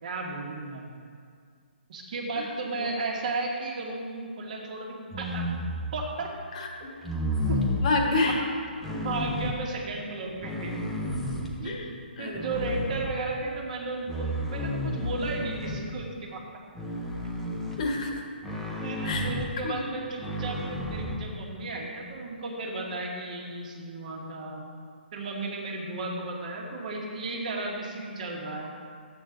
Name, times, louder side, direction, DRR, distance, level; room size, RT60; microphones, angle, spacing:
voice 1, 0.0-0.9 1.9-5.4 5.9-6.3 7.5-7.7 8.1-8.5 8.9-10.8 11.6-11.8 12.2-16.4 18.8-24.6 25.1-28.7, right 3 dB, 45° right, 0 dB, 1.6 m, -34 dB
voice 2, 2.3-2.9 6.5-6.9 7.2-7.3 7.8-8.4 11.6-12.4 17.8-18.2 19.0-19.3 19.6-19.8, left 3 dB, 40° left, 1 dB, 1.4 m, -29 dB
sound 1, 5.1-6.1 7.0-7.9 8.8-9.6 10.3-11.7 12.3-13.5 14.1-16.0 16.8-17.9 18.4-19.6 20.2-21.2, left 1 dB, 5° left, 0.7 m, -31 dB
12.0 x 8.4 x 3.8 m, 2.1 s
hypercardioid pair, 165°, 6 cm